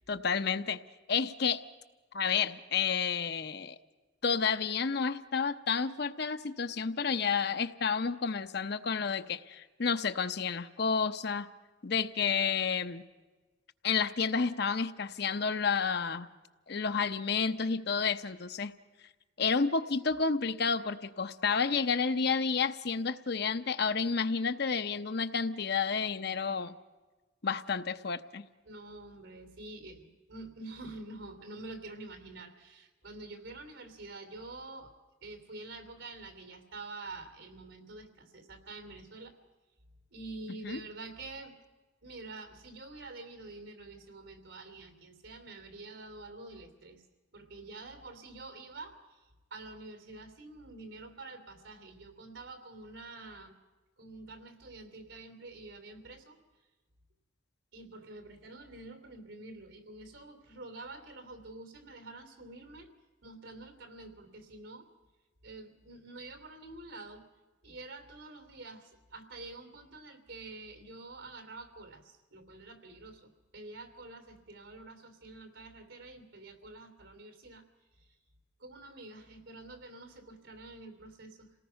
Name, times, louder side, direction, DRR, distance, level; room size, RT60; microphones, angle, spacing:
voice 1, 0.1-0.8 1.1-1.6 2.1-3.7 4.2-11.5 11.8-13.0 13.8-16.3 16.7-18.7 19.4-26.7 27.4-28.4 40.6-40.8, left 5 dB, 60° left, 10 dB, 0.8 m, -30 dB
voice 2, 28.6-34.9 35.2-39.3 40.1-41.6 42.0-47.0 47.3-49.2 49.5-53.5 54.0-56.4 57.7-62.9 63.2-64.9 65.4-67.2 67.6-77.6 78.6-81.5, right 2 dB, 90° right, 8 dB, 3.1 m, -47 dB
28.0 x 18.5 x 5.8 m, 1.2 s
head